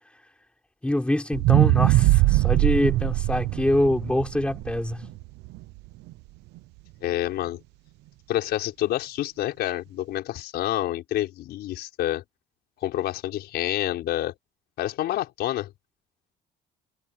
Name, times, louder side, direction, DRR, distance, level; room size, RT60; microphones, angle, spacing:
voice 1, 0.8-5.1, left 1 dB, 5° left, 5.7 m, -25 dB
sound 1, 1.3-5.6 6.1-6.2, right 18 dB, 90° right, 0.9 m, -21 dB
voice 2, 7.0-7.6 8.3-12.2 12.8-14.3 14.8-15.7, left 13 dB, 75° left, 5.5 m, -28 dB
cardioid pair, 110°, 17 cm